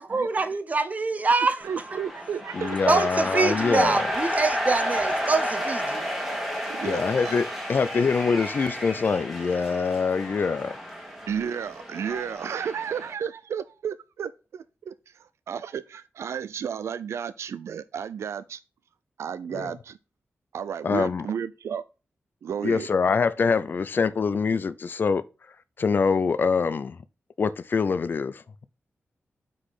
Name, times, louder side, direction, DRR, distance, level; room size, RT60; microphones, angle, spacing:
voice 1, 0.0-1.6 1.9-2.0 2.9-6.1, right 3 dB, 35° right, 0.7 m, -25 dB
sound 1, 1.6-13.1, equal, ahead, 1.6 m, -32 dB
voice 2, 1.6-3.1 6.7-7.3 11.3-14.9 15.5-18.6 19.2-20.0 20.5-21.8 22.4-22.9, right 8 dB, 85° right, 0.4 m, -33 dB
voice 3, 2.5-4.1 6.8-10.8 19.5-19.7 20.8-21.3 22.6-25.2 25.8-27.0 27.4-28.4, left 5 dB, 45° left, 0.4 m, -24 dB
5.0 x 4.1 x 5.5 m
wide cardioid pair, 140°, 5 cm